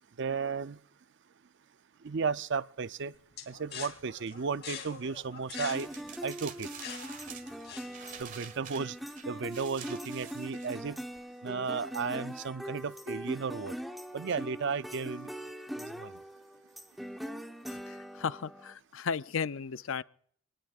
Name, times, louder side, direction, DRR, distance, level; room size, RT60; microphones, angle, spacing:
voice 1, 0.2-0.8 2.0-3.1 3.5-5.9 6.2-6.7 8.2-9.0 9.3-11.0 11.4-13.7 14.1-15.3 15.8-16.1, right 5 dB, 60° right, 0.5 m, -34 dB
sound 1, 3.4-8.2, left 8 dB, 55° left, 3.1 m, -44 dB
sound 2, 5.5-18.7, equal, ahead, 1.1 m, -42 dB
sound 3, 5.7-11.2, right 7 dB, 40° right, 1.6 m, -48 dB
voice 2, 17.7-20.0, left 6 dB, 80° left, 0.5 m, -35 dB
27.0 x 19.5 x 2.4 m
head